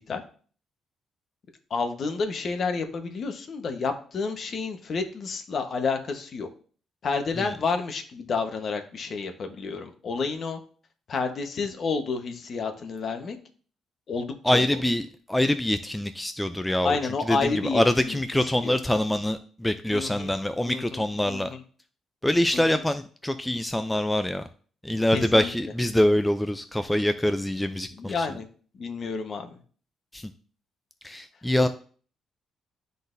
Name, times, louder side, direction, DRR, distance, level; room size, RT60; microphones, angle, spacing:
voice 1, 1.7-6.5 7.0-10.6 11.1-13.4 14.1-14.6 16.8-18.8 19.9-20.3 20.6-21.6 22.5-22.8 25.1-25.5 28.0-28.5 28.8-29.6 31.6-31.7, left 4 dB, 50° left, 6 dB, 1.2 m, -30 dB
voice 2, 14.4-15.0 15.3-17.0 17.3-21.5 22.2-24.4 24.8-28.3 30.1-30.3 31.0-31.7, left 1 dB, 10° left, 9 dB, 0.4 m, -25 dB
12.0 x 4.0 x 2.7 m, 0.42 s
cardioid pair, 90°, 0 cm